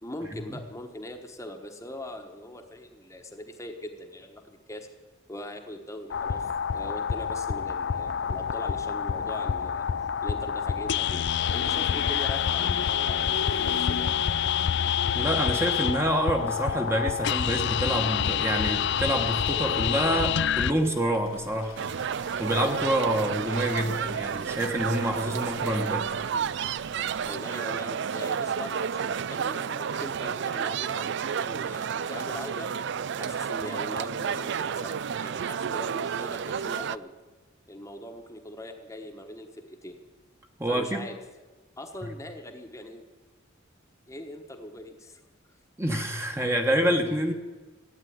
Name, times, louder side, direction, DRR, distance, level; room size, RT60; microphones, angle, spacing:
voice 1, 0.0-4.9 5.3-11.2 11.5-14.1 27.3-32.7 33.2-34.9 35.2-37.1 37.7-40.0 40.7-41.2 41.8-43.0 44.1-45.2, left 1 dB, 15° left, 4 dB, 1.2 m, -41 dB
sound 1, 6.1-20.7, left 8 dB, 55° left, 0.5 m, -27 dB
sound 2, 11.4-27.3, left 3 dB, 85° left, 2.2 m, -44 dB
voice 2, 15.1-21.8 22.4-26.1 40.6-41.1 45.8-47.3, right 1 dB, 10° right, 3 dB, 1.2 m, -27 dB
sound 3, 21.8-37.0, right 7 dB, 60° right, 0.4 m, -31 dB
15.0 x 9.8 x 9.5 m, 1.3 s
head